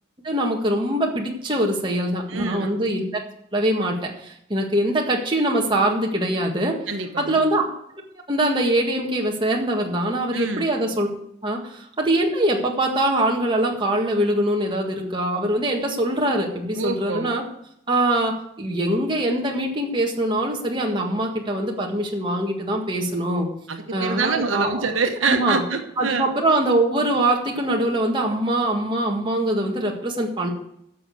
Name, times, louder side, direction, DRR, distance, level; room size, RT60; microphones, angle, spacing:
voice 1, 0.2-3.2 3.5-6.8 7.2-7.7 8.3-11.1 11.4-17.4 17.9-23.5 23.9-24.9 25.2-25.6 26.0-30.5, right 1 dB, 25° right, 0 dB, 1.7 m, -23 dB
voice 2, 2.3-2.7 6.9-7.4 10.3-10.7 16.7-17.3 23.7-26.3, right 4 dB, 80° right, 5 dB, 1.2 m, -26 dB
10.5 x 6.8 x 7.7 m, 0.75 s
head